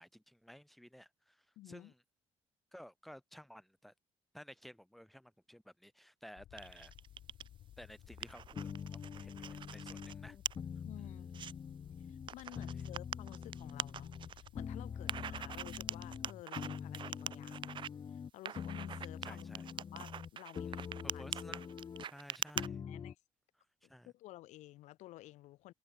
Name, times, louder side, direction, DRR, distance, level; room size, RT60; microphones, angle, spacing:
voice 1, 0.0-2.0 2.7-3.9 4.3-6.9 7.8-10.4 12.5-12.7 19.2-19.7 20.7-21.6 22.0-22.8 23.9-24.1, equal, ahead, 3.8 m, -55 dB
voice 2, 1.6-1.9 10.8-11.4 12.1-17.8 18.1-21.2 22.9-23.2 23.8-25.7, left 16 dB, 90° left, 4.4 m, -53 dB
sound 1, 6.4-16.2, left 12 dB, 65° left, 4.4 m, -58 dB
sound 2, 6.6-7.5 7.9-10.1 10.5-10.6 11.0-11.5 12.3-14.5 15.1-17.9 18.5-22.7, right 9 dB, 45° right, 2.0 m, -43 dB
sound 3, 8.1-12.3 12.5-14.3 14.5-18.3 18.5-20.3 20.5-22.0 22.5-23.1, left 7 dB, 35° left, 3.4 m, -45 dB
cardioid pair, 150°, 12 cm